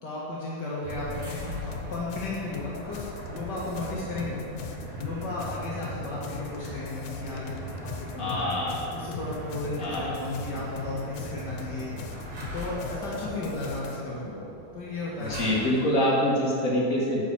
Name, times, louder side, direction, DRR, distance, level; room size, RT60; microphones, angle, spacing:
voice 1, 0.0-8.5 8.9-12.2 12.5-14.3 14.7-15.5, left 2 dB, 55° left, -6 dB, 1.1 m, -34 dB
sound 1, 0.8-16.0, right 1 dB, 45° right, 3.4 m, -40 dB
sound 2, 0.9-14.0, left 7 dB, 85° left, 2.8 m, -42 dB
voice 2, 8.2-8.8 9.8-10.1 14.3-14.4 15.3-17.2, left 1 dB, 30° left, -5 dB, 1.9 m, -25 dB
10.5 x 6.2 x 7.1 m, 2.5 s
omnidirectional pair, 4.4 m